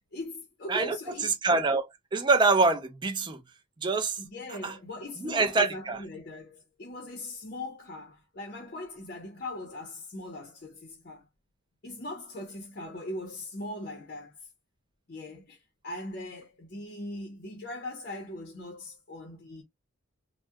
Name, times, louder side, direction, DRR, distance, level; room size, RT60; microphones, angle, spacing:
voice 1, 0.1-1.3 4.2-11.3 11.8-14.3 15.1-15.6 15.8-19.6, left 1 dB, 45° left, 0.6 m, -40 dB
voice 2, 0.7-3.4 3.8-4.2 4.5-4.8 5.2-6.0, right 3 dB, 20° right, 0.3 m, -26 dB
2.3 x 2.1 x 2.6 m
head